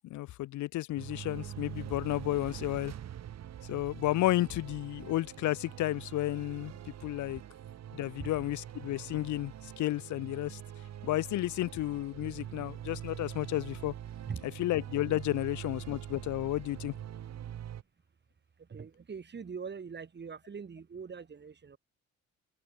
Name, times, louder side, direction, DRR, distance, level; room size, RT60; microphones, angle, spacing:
voice 1, 0.0-2.9 3.7-6.7 7.0-7.4 7.9-10.6 11.0-13.9 14.6-16.9, left 16 dB, 75° left, 0.6 m, -32 dB
sound 1, 1.0-17.8, right 10 dB, 60° right, 1.6 m, -44 dB
voice 2, 18.7-21.8, right 6 dB, 35° right, 2.8 m, -42 dB
open air
cardioid pair, 90°, 30 cm